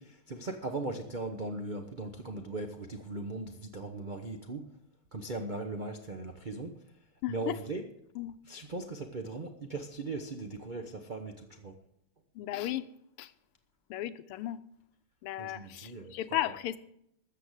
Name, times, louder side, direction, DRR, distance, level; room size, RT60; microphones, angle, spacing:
voice 1, 0.0-4.7 5.1-6.8 7.3-7.9 8.5-11.8 15.4-16.1 16.4-16.5, right 2 dB, 90° right, 0.4 m, -39 dB
voice 2, 7.2-7.6 8.1-8.4 12.3-12.9 13.2-13.3 13.9-14.6 15.2-16.8, left 13 dB, 85° left, 1.6 m, -35 dB
13.5 x 7.1 x 8.1 m
omnidirectional pair, 2.4 m